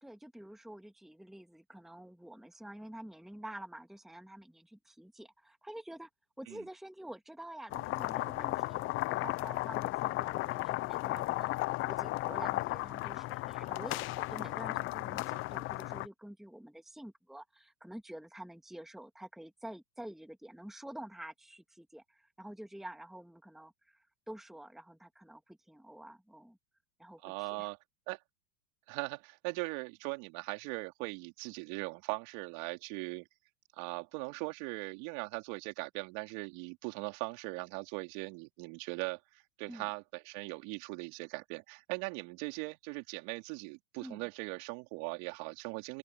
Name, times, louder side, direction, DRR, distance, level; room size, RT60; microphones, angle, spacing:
voice 1, 0.0-6.1 6.4-26.6 27.0-27.7 39.7-39.9 44.0-44.2, right 1 dB, ahead, 2.0 m, -48 dB
sound 1, 7.7-16.1, left 18 dB, 30° left, 0.5 m, -35 dB
voice 2, 27.2-27.8 28.1-28.2 28.9-33.2 33.7-46.0, right 29 dB, 55° right, 3.9 m, -40 dB
open air
hypercardioid pair, 115°, 45 cm